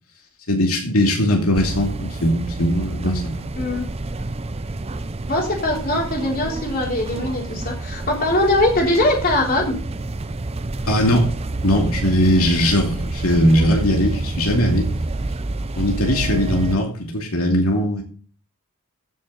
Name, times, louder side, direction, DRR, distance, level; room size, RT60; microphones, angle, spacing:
voice 1, 0.5-3.5 10.8-11.3 11.6-14.9 15.8-18.0, equal, 85° left, 1 dB, 2.6 m, -19 dB
sound 1, 1.5-16.8, right 2 dB, 30° right, 0.6 m, -28 dB
voice 2, 5.3-9.8, left 1 dB, 45° left, 0 dB, 3.6 m, -21 dB
15.5 x 6.6 x 4.0 m, 0.41 s
head